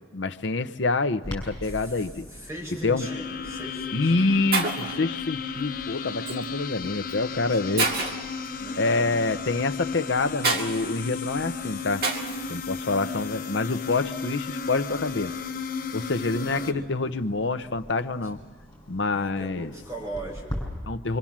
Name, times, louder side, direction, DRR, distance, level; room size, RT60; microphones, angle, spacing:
voice 1, 0.1-2.2 2.8-3.1 3.9-7.9 8.8-12.0 12.5-15.3 15.9-18.4 18.9-19.7 20.9-21.2, left 3 dB, 80° left, 10 dB, 0.9 m, -26 dB
Clock, 1.2-20.6, equal, 20° left, 7.2 m, -45 dB
voice 2, 1.6-4.1 7.6-8.0 8.6-9.3 9.5-9.6 13.0-13.5 16.3-16.9 18.3-18.4 19.1-20.7, right 1 dB, 15° right, -4 dB, 6.1 m, -40 dB
sound 1, 3.0-16.7, left 5 dB, 50° left, 1.1 m, -34 dB
Shatter, 3.3-3.5 4.2-4.3 4.5-5.0 6.3-6.5 7.1-7.2 7.8-8.3 10.4-10.7 12.0-12.4, right 3 dB, 55° right, 2.2 m, -26 dB
25.0 x 25.0 x 7.4 m, 1.5 s
head